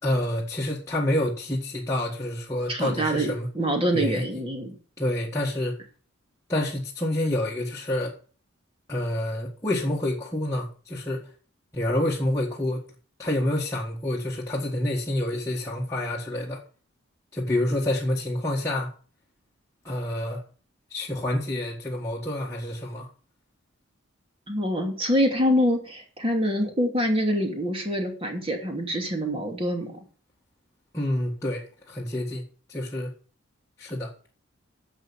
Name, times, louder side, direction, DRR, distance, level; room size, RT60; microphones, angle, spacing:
voice 1, 0.0-3.5 3.9-4.4 5.0-5.8 6.5-8.1 8.9-11.3 11.7-12.8 13.2-16.6 17.3-18.9 19.8-20.4 20.9-23.1 30.9-33.1 33.8-34.1, left 1 dB, 15° left, 1.7 m, -28 dB
voice 2, 2.7-4.8 24.5-30.0, equal, 25° right, 2.7 m, -25 dB
10.5 x 7.1 x 7.1 m
head